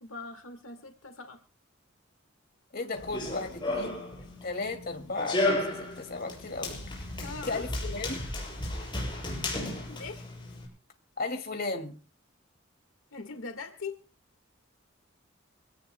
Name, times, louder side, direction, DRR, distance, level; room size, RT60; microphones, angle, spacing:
voice 1, 0.0-1.4 7.2-7.6 9.9-10.3 13.1-14.0, left 4 dB, 80° left, 7 dB, 1.8 m, -41 dB
voice 2, 2.7-4.0 4.4-6.7 7.4-8.2 11.2-12.0, left 3 dB, 50° left, 5 dB, 2.4 m, -35 dB
Run, 2.9-10.7, left 1 dB, 25° left, 6.6 m, -34 dB
26.0 x 17.5 x 2.2 m, 0.33 s
head